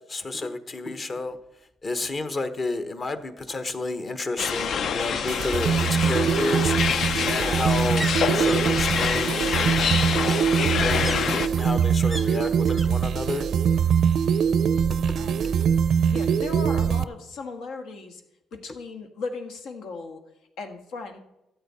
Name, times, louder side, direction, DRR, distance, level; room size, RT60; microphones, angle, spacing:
voice 1, 0.1-1.4 1.8-9.5 9.7-10.2 10.8-13.5, left 3 dB, 40° left, 1.0 m, -31 dB
sound 1, 2.0-2.1 2.5-2.6 2.8-3.8 5.1-12.9 13.1-13.7 14.0-15.0 15.3-15.4, equal, 5° left, 0.7 m, -42 dB
sound 2, 4.4-11.5, left 7 dB, 65° left, 0.5 m, -26 dB
sound 3, 5.0-17.0, right 7 dB, 65° right, 0.4 m, -23 dB
voice 2, 15.2-15.5 16.1-18.2 18.5-20.2 20.6-21.2, left 4 dB, 85° left, 1.6 m, -36 dB
13.5 x 8.1 x 4.2 m
cardioid pair, 90°, 0 cm